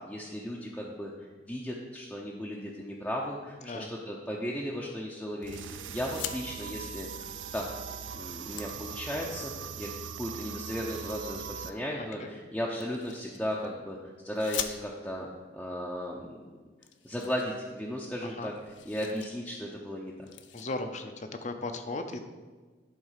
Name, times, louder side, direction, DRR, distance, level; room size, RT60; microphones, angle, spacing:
voice 1, 0.0-7.7 8.1-9.9 10.2-14.0 14.2-15.3 15.5-16.4 17.0-18.5 18.8-20.3, equal, 5° left, -4 dB, 0.7 m, -36 dB
voice 2, 3.6-3.9 12.0-12.3 18.2-18.5 20.5-22.2, left 2 dB, 40° left, 7 dB, 0.7 m, -37 dB
sound 1, 5.4-11.7, right 7 dB, 80° right, 0.4 m, -40 dB
sound 2, 6.0-6.4 7.7-7.8 8.1-9.5 10.6-11.5 12.8-13.7 14.3-15.2 16.1-16.2 16.4-16.5 16.8-18.1 18.4-19.3 19.6-19.8 20.2-20.7, left 10 dB, 75° left, 0.5 m, -42 dB
11.0 x 4.2 x 5.7 m, 1.4 s
head